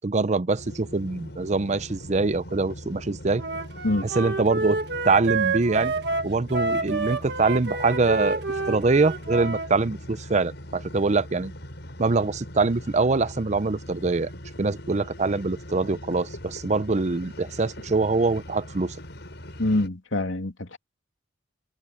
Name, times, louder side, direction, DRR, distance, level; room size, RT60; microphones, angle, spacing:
voice 1, 0.0-3.4 4.2-5.9 6.2-11.5 12.0-14.3 14.6-19.0, right 3 dB, 35° right, 0.6 m, -24 dB
sound 1, 0.6-19.9, equal, 60° left, 7.5 m, -41 dB
Wind instrument woodwind instrument, 3.4-9.7, right 3 dB, 55° right, 1.6 m, -28 dB
voice 2, 19.6-20.8, left 1 dB, 80° left, 2.7 m, -25 dB
head